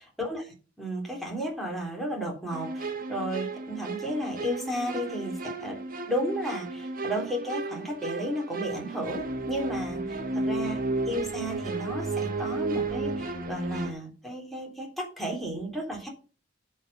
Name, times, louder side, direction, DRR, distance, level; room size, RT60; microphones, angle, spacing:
voice 1, 0.2-5.8 6.1-10.8 11.1-16.1, equal, ahead, -1 dB, 3.3 m, -33 dB
sound 1, 2.5-13.9, right 2 dB, 50° right, 1.4 m, -33 dB
11.0 x 5.1 x 6.6 m, 0.37 s
head